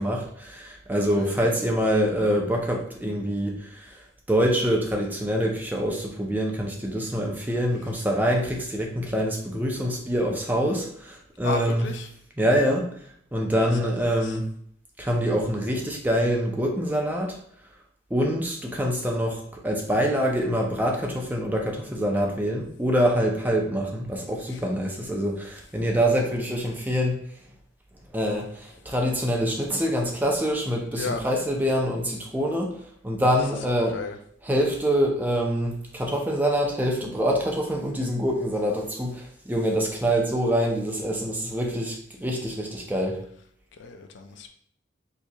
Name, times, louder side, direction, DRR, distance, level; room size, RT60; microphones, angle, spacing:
voice 1, 0.0-4.0 4.3-11.9 12.4-12.9 13.3-14.4 15.0-17.4 18.1-27.2 28.1-32.8 33.0-34.0 34.4-43.2, equal, 10° right, 0 dB, 0.4 m, -25 dB
voice 2, 11.4-12.1 13.8-14.4 24.5-24.6 31.0-31.2 33.7-34.2 43.8-44.5, left 3 dB, 55° left, 5 dB, 0.3 m, -34 dB
4.4 x 2.7 x 2.2 m, 0.65 s
head